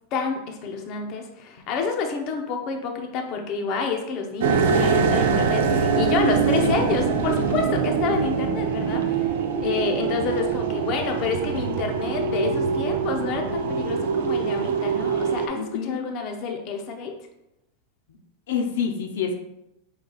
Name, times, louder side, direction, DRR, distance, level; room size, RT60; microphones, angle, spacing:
voice 1, 0.1-9.3 9.6-17.1, left 5 dB, 45° left, 3 dB, 0.6 m, -28 dB
sound 1, 4.4-15.5, right 6 dB, 80° right, 0.5 m, -23 dB
voice 2, 15.5-16.0 18.5-19.4, left 6 dB, 80° left, 2 dB, 0.6 m, -28 dB
4.8 x 2.3 x 3.8 m, 0.84 s
supercardioid pair, 135°, 0 cm